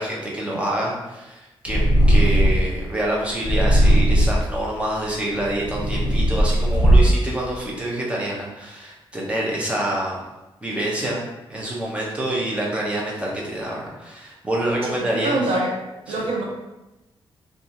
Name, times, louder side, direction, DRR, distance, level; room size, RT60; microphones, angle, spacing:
voice 1, 0.0-10.2 10.6-11.2 11.5-15.4 16.1-16.2, right 1 dB, 10° right, -4 dB, 0.6 m, -27 dB
Purr, 1.7-2.8 3.4-4.5 5.2-7.3, right 1 dB, 65° left, 0.6 m, -17 dB
voice 2, 14.8-15.7 16.1-16.4, right 2 dB, 85° right, -2 dB, 0.7 m, -24 dB
2.8 x 2.3 x 2.6 m, 1.0 s
wide cardioid pair, 155°, 10 cm